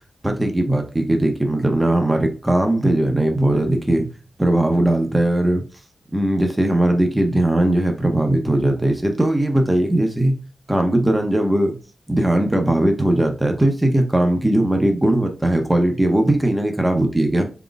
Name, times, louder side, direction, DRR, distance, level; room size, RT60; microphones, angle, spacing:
voice 1, 0.2-4.1 4.4-5.6 6.1-10.4 10.7-11.7 12.1-17.4, right 1 dB, 10° right, 4 dB, 0.7 m, -19 dB
4.2 x 3.9 x 2.3 m, 0.35 s
wide cardioid pair, 150°, 0 cm